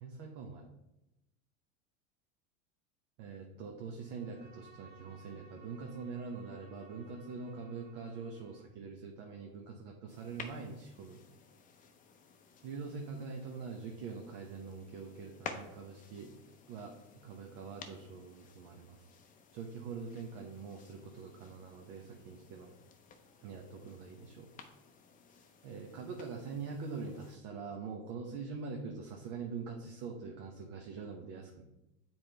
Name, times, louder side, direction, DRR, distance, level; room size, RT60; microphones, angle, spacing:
voice 1, 0.0-0.7 3.2-11.2 12.6-16.4 16.7-19.0 19.5-22.7 23.4-24.5 25.6-31.6, right 5 dB, 55° right, 1 dB, 1.0 m, -44 dB
Bowed string instrument, 4.0-8.8, right 3 dB, 25° right, 1.1 m, -60 dB
sound 1, 10.1-27.4, left 5 dB, 20° left, 0.6 m, -54 dB
7.3 x 4.4 x 3.3 m, 0.93 s
supercardioid pair, 125°, 39 cm